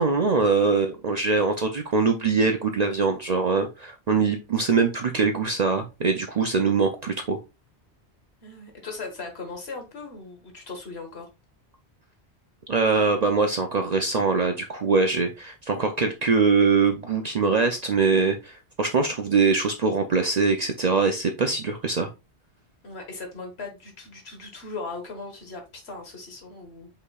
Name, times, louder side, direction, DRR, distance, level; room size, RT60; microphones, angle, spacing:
voice 1, 0.0-7.4 12.7-22.1, right 4 dB, 50° right, 0.5 m, -23 dB
voice 2, 8.4-11.3 22.8-26.9, left 3 dB, 70° left, 1.6 m, -38 dB
5.3 x 4.2 x 2.3 m
omnidirectional pair, 1.1 m